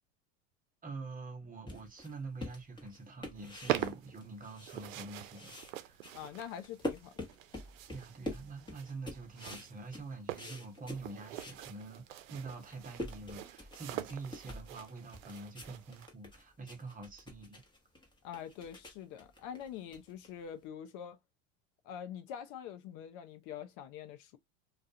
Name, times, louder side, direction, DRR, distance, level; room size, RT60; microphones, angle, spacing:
voice 1, 0.8-6.0 7.9-17.6, right 3 dB, 20° right, 1.0 m, -46 dB
sound 1, 1.7-5.1 5.3-11.6 12.1-12.2 12.5-20.6, left 1 dB, 10° left, 0.9 m, -46 dB
sound 2, 3.3-16.1, right 13 dB, 85° right, 0.5 m, -44 dB
voice 2, 6.1-7.3 18.2-21.2 21.8-24.4, left 9 dB, 50° left, 0.6 m, -45 dB
2.3 x 2.3 x 2.6 m
hypercardioid pair, 95°, 39 cm